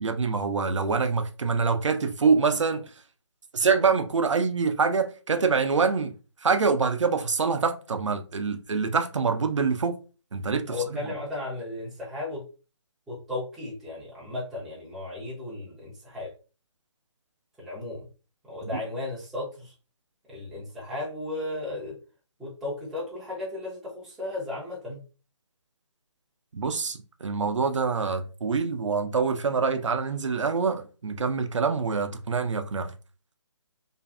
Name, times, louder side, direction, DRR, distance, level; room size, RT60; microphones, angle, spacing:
voice 1, 0.0-2.8 3.5-6.1 6.4-10.0 10.3-10.7 26.5-32.9, right 5 dB, 80° right, 0.5 m, -25 dB
voice 2, 10.7-12.4 13.1-16.3 17.6-18.0 18.5-19.7 20.3-21.9 22.4-25.0, left 2 dB, ahead, 0.3 m, -35 dB
2.5 x 2.5 x 2.2 m
figure-of-eight pair, 150°, 15 cm